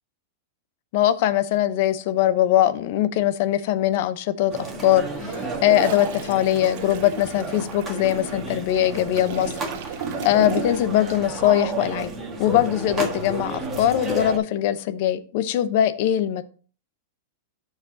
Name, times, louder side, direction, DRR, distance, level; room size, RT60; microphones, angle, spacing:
voice 1, 0.9-9.5 10.2-12.1 12.4-16.4, left 12 dB, 50° left, 0.8 m, -21 dB
sound 1, 4.5-14.4, right 2 dB, 15° right, 1.6 m, -31 dB
Toilet flush, 5.1-11.1 11.4-11.6, right 8 dB, 55° right, 1.2 m, -37 dB
sound 2, 8.1-13.1, left 4 dB, 90° left, 2.5 m, -44 dB
13.5 x 4.9 x 2.7 m
supercardioid pair, 155°, 0 cm